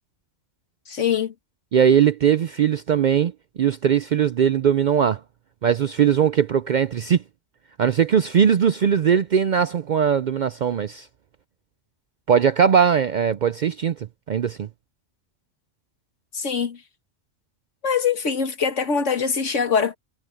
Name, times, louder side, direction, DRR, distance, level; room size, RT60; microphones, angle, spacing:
voice 1, 0.9-1.3 16.3-16.8 17.8-20.0, left 6 dB, 80° left, 1.9 m, -23 dB
voice 2, 1.7-3.3 3.6-5.2 5.6-7.2 7.8-11.1 12.3-14.7, right 8 dB, 60° right, 0.5 m, -20 dB
omnidirectional pair, 1.2 m